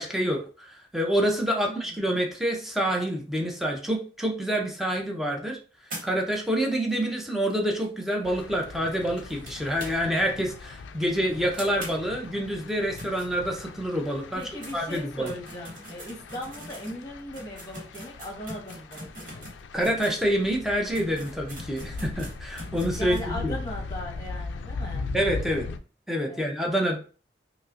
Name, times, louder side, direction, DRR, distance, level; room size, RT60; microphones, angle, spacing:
voice 1, 0.0-5.6 6.0-14.4 14.7-15.3 19.7-23.6 25.1-25.7 26.1-27.0, equal, ahead, 0 dB, 0.6 m, -27 dB
voice 2, 1.7-2.0 14.3-19.5 22.9-25.2 26.3-26.5, left 1 dB, 20° left, 0 dB, 1.1 m, -39 dB
sound 1, 5.9-10.3 10.6-10.7 11.0-11.1 11.5-13.9 14.3-20.2 20.6-20.7 20.9-23.3, right 1 dB, 50° right, 1.3 m, -44 dB
sound 2, 8.2-25.8, left 4 dB, 90° left, 0.3 m, -39 dB
5.2 x 2.1 x 2.5 m, 0.38 s
head